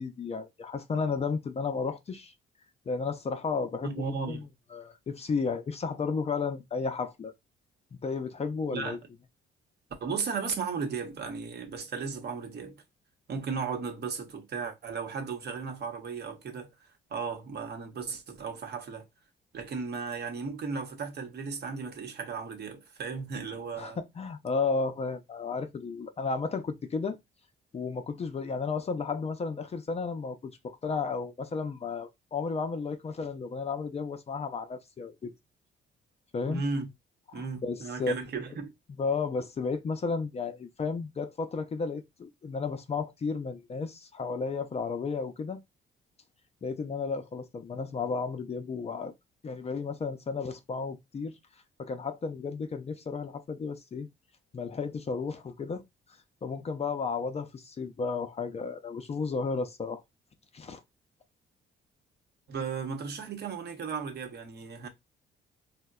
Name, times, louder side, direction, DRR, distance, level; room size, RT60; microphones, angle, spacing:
voice 1, 0.0-2.3 2.9-4.4 4.7-7.3 8.0-9.0 23.8-27.2 27.7-35.3 36.3-36.6 37.3-38.1 39.0-45.6 46.6-49.1 49.4-51.3 51.8-54.1 54.5-55.8 56.4-60.0 60.5-60.8, left 4 dB, 30° left, 0.4 m, -33 dB
voice 2, 3.8-4.5 8.7-9.0 10.0-12.8 13.3-19.1 19.5-24.0 36.4-36.9 37.3-38.7 62.5-64.9, right 5 dB, 55° right, 0.9 m, -35 dB
3.7 x 2.1 x 2.3 m
cardioid pair, 90°, 20 cm